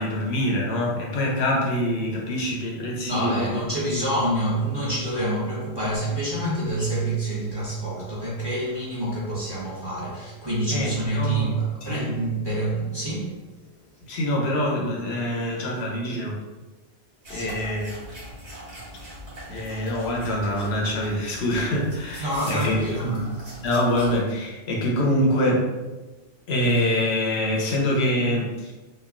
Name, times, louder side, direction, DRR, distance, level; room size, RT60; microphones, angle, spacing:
voice 1, 0.0-3.6 10.7-11.5 11.8-12.1 14.0-16.4 17.3-17.9 19.5-23.3 23.6-25.7 26.5-28.7, left 1 dB, 75° left, -2 dB, 0.8 m, -25 dB
voice 2, 3.0-13.3 17.3-17.5 22.2-23.1, right 1 dB, 30° right, -9 dB, 0.6 m, -27 dB
sound 1, 17.2-24.2, equal, 80° right, 1.5 m, -41 dB
3.0 x 2.2 x 2.4 m, 1.2 s
omnidirectional pair, 1.1 m